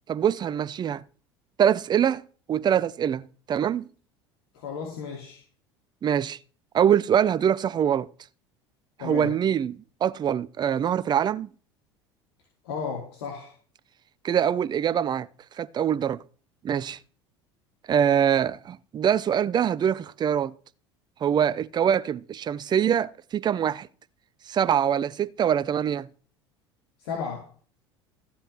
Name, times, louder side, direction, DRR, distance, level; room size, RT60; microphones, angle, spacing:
voice 1, 0.1-1.0 1.6-3.9 6.0-6.4 6.7-8.1 9.0-11.5 14.2-15.3 15.6-16.2 16.6-17.0 17.9-20.5 21.2-23.9 24.5-26.1, right 9 dB, 30° right, 0.6 m, -24 dB
voice 2, 4.5-5.4 9.0-9.4 12.6-13.5 27.0-27.5, left 6 dB, 65° left, 2.7 m, -34 dB
14.0 x 5.7 x 6.3 m
figure-of-eight pair, 70°, 14 cm